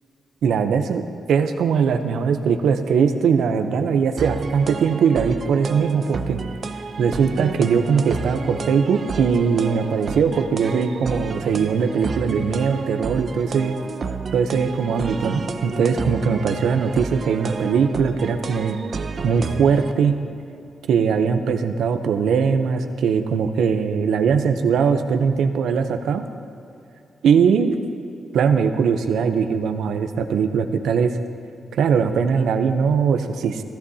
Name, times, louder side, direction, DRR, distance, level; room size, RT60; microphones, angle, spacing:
voice 1, 0.4-1.0 1.3-6.4 7.0-13.8 14.3-18.8 19.2-20.2 20.9-26.2 27.2-27.8 28.3-31.1 31.7-33.6, right 6 dB, 85° right, 7 dB, 0.7 m, -20 dB
sound 1, 4.2-19.9, right 4 dB, 40° right, 0.6 m, -31 dB
16.0 x 15.0 x 2.8 m, 2.7 s
wide cardioid pair, 165°, 0 cm